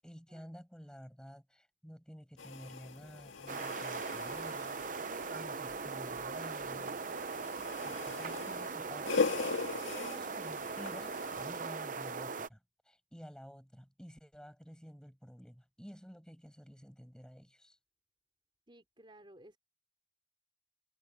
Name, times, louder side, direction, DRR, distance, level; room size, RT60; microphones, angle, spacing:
voice 1, 0.0-7.0 7.8-17.8, equal, 5° left, 7.8 m, -52 dB
sound 1, 2.4-11.4, left 4 dB, 85° left, 1.9 m, -40 dB
sound 2, 3.5-12.5, right 4 dB, 40° right, 0.7 m, -40 dB
voice 2, 9.7-10.1 18.7-19.6, right 1 dB, 25° right, 4.3 m, -57 dB
head